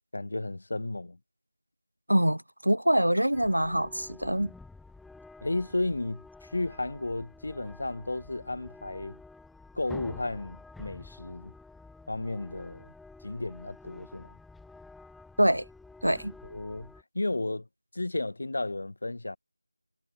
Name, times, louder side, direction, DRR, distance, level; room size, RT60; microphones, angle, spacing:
voice 1, 0.1-1.2 5.4-9.2 9.7-11.5 12.1-12.9 13.2-14.3 16.4-17.7 17.9-19.4, left 2 dB, 45° left, 5.4 m, -33 dB
voice 2, 2.1-4.5 15.4-15.6 16.0-16.3, equal, 80° right, 1.0 m, -25 dB
sound 1, 3.3-17.0, left 3 dB, ahead, 3.0 m, -50 dB
figure-of-eight pair, 170°, 0 cm